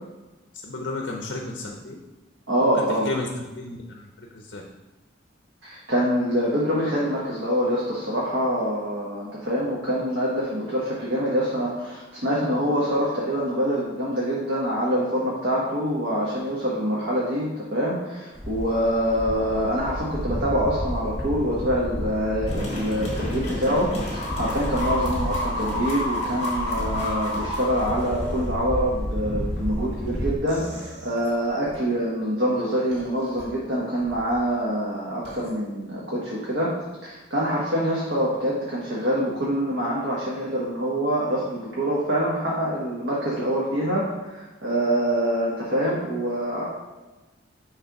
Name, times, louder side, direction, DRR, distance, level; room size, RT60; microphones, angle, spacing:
voice 1, 0.6-2.0 3.0-4.6, left 2 dB, 65° left, 1 dB, 0.6 m, -33 dB
voice 2, 2.5-3.1 5.6-36.7 37.0-46.7, equal, 80° right, -6 dB, 1.2 m, -25 dB
sound 1, 18.3-30.4, equal, 5° left, 0.5 m, -32 dB
sound 2, 22.5-28.5, left 1 dB, 35° left, 1.7 m, -30 dB
sound 3, 30.5-31.8 32.9-33.4 34.0-34.4 35.2-35.5, equal, 60° right, 1.9 m, -41 dB
6.6 x 3.3 x 4.8 m, 1.1 s
head